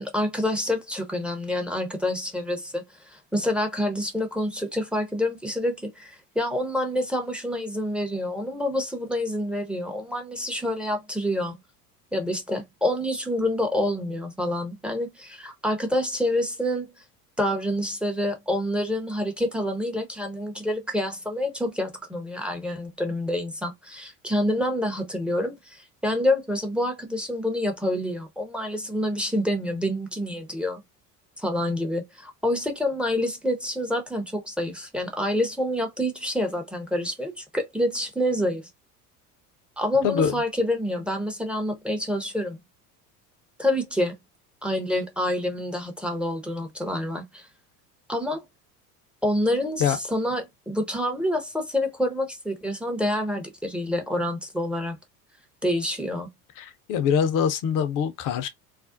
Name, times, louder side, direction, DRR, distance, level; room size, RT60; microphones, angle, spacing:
voice 1, 0.0-11.6 12.1-16.9 17.4-30.8 31.4-38.7 39.8-42.6 43.6-44.1 44.6-47.5 48.1-48.5 49.2-55.0 55.6-56.3, left 1 dB, ahead, 0.7 m, -27 dB
voice 2, 40.0-40.3 49.8-50.0 56.6-58.5, left 7 dB, 45° left, 0.7 m, -24 dB
2.5 x 2.0 x 2.5 m
hypercardioid pair, 75°, 45 cm